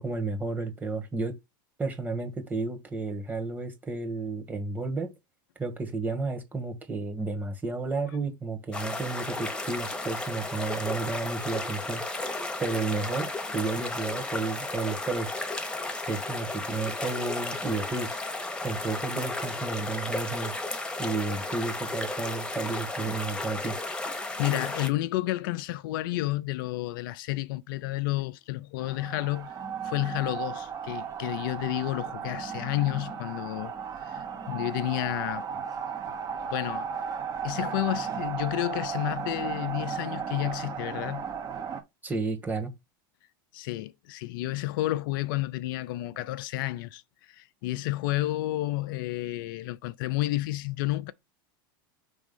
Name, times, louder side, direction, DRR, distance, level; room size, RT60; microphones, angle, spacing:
voice 1, 0.0-1.3 1.8-5.1 5.6-12.0 12.6-15.4 16.0-18.2 18.6-20.5 21.0-23.8 42.0-42.7, right 3 dB, 15° right, 1.7 m, -32 dB
sound 1, 8.7-24.9, left 2 dB, 10° left, 1.2 m, -34 dB
voice 2, 24.4-29.5 29.8-35.4 36.5-36.9 37.4-41.3 43.5-51.1, left 17 dB, 70° left, 0.5 m, -31 dB
sound 2, 28.8-41.8, right 7 dB, 30° right, 1.2 m, -35 dB
5.3 x 3.5 x 5.4 m
hypercardioid pair, 105°, 12 cm